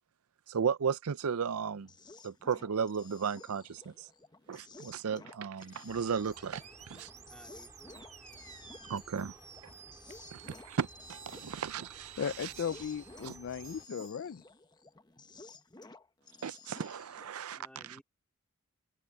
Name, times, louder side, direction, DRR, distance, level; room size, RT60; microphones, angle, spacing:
voice 1, 0.5-1.9 2.2-4.1 4.5-6.6 6.9-7.1 8.9-9.3 10.3-12.5 13.2-13.3 16.4-17.6, right 6 dB, 80° right, 0.5 m, -35 dB
sound 1, 1.2-17.4, left 3 dB, 20° left, 0.9 m, -55 dB
sound 2, 5.9-13.9, right 1 dB, 15° right, 3.1 m, -58 dB
sound 3, 6.2-14.2, right 8 dB, 35° right, 5.8 m, -53 dB
voice 2, 6.9-8.0 17.5-18.0, equal, 5° left, 2.9 m, -58 dB
voice 3, 12.2-14.4, left 7 dB, 55° left, 0.4 m, -36 dB
open air
head